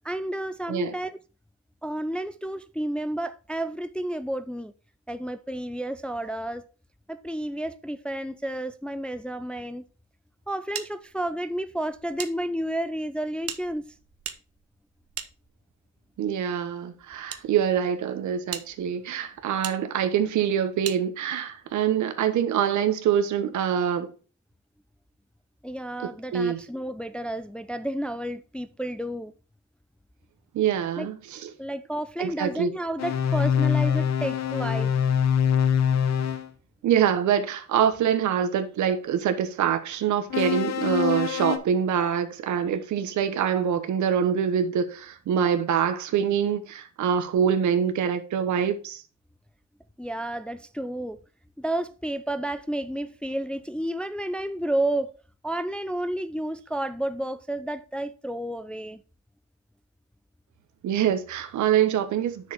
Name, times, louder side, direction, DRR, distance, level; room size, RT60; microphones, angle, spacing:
voice 1, 0.0-1.2 1.8-4.7 5.1-6.6 7.1-9.8 10.5-13.9 25.6-29.3 31.0-31.1 31.6-34.9 50.0-51.2 51.6-55.1 55.4-59.0, right 1 dB, 5° left, 0.4 m, -31 dB
sound 1, 10.7-12.3 12.6-12.7 13.4-15.9 16.7-17.4 18.0-18.1 18.5-18.7 19.6-19.8 20.8-21.0, right 9 dB, 50° right, 0.8 m, -38 dB
voice 2, 16.2-24.1 26.3-26.6 30.5-31.5 32.2-32.7 36.8-49.0 60.8-62.5, right 8 dB, 70° right, 1.1 m, -25 dB
sound 2, 33.0-36.5 40.3-41.6, left 8 dB, 60° left, 1.0 m, -24 dB
7.3 x 6.4 x 3.5 m
cardioid pair, 90°, 30 cm